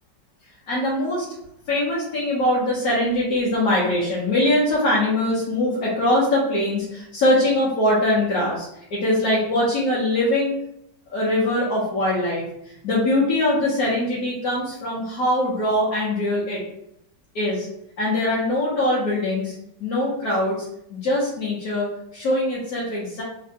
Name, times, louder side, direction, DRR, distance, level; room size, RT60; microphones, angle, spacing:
voice 1, 0.7-1.3 1.7-10.5 11.1-16.6 17.3-17.7 18.0-19.5 19.8-23.2, left 1 dB, 65° left, -6 dB, 1.1 m, -22 dB
3.3 x 2.1 x 2.7 m, 0.78 s
omnidirectional pair, 1.9 m